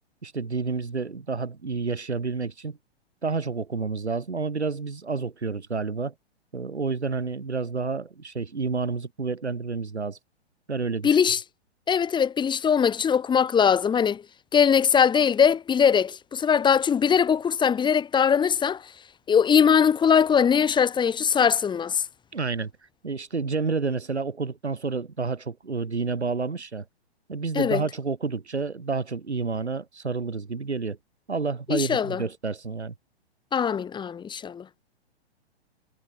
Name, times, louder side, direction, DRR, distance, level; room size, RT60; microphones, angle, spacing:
voice 1, 0.2-2.8 3.2-6.1 6.5-10.2 10.7-11.2 22.3-22.7 23.0-26.8 27.3-31.0 31.3-32.9, right 4 dB, 85° right, 2.8 m, -29 dB
voice 2, 11.0-11.4 11.9-14.2 14.5-18.8 19.3-22.0 27.5-27.8 31.7-32.2 33.5-34.6, left 7 dB, 15° left, 2.3 m, -21 dB
figure-of-eight pair, 115°, 33 cm